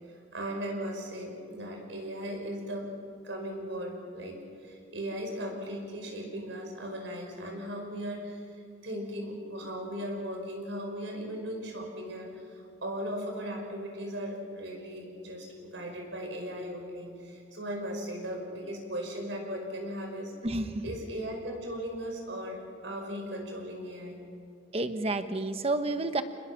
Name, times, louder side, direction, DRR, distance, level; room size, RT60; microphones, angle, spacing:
voice 1, 0.3-2.9 3.2-8.6 8.8-20.3 20.8-24.2, equal, 75° right, 2 dB, 5.4 m, -37 dB
voice 2, 20.4-20.8 24.7-26.2, right 2 dB, 30° right, 9 dB, 1.1 m, -30 dB
28.5 x 21.0 x 5.9 m, 2.4 s
head